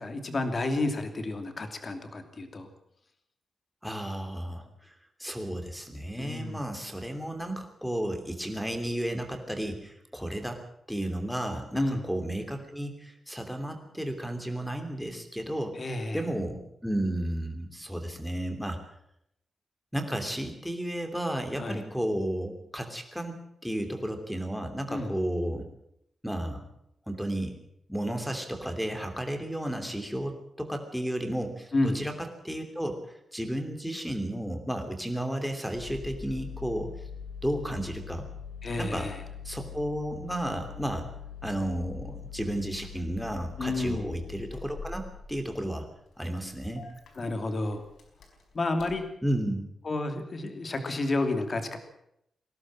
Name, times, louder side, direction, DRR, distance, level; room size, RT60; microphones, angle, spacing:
voice 1, 0.0-2.7 6.2-6.7 11.7-12.1 15.8-16.3 21.6-21.9 24.9-25.2 31.7-32.0 38.6-39.2 43.6-44.2 47.2-47.8 48.5-49.1 49.8-51.8, left 2 dB, 35° left, 7 dB, 2.7 m, -31 dB
voice 2, 3.8-4.9 5.2-10.6 10.9-15.8 16.1-18.8 19.9-25.6 26.2-26.6 27.1-27.5 27.9-33.0 33.3-36.9 37.4-38.3 38.8-39.1 39.4-41.1 41.4-45.0 45.3-45.9 46.2-46.8 49.2-49.6, right 1 dB, ahead, 6 dB, 3.0 m, -33 dB
Engine starting, 35.7-49.0, left 7 dB, 85° left, 5.0 m, -43 dB
21.0 x 17.0 x 7.6 m, 0.75 s
wide cardioid pair, 165°, 0 cm